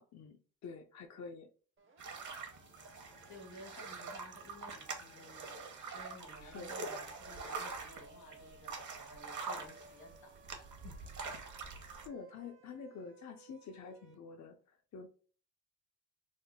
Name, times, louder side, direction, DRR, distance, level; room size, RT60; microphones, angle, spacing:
voice 1, 0.0-1.5 6.4-6.7 12.1-15.1, left 5 dB, 50° left, 3 dB, 0.5 m, -48 dB
Siren, 1.8-14.1, right 3 dB, 35° right, 0.7 m, -62 dB
sound 1, 2.0-12.1, right 4 dB, 50° right, 0.9 m, -45 dB
voice 2, 3.3-10.9 11.2-11.3, left 1 dB, 80° left, 0 dB, 1.7 m, -55 dB
3.5 x 2.1 x 3.5 m, 0.41 s
cardioid pair, 95°, 37 cm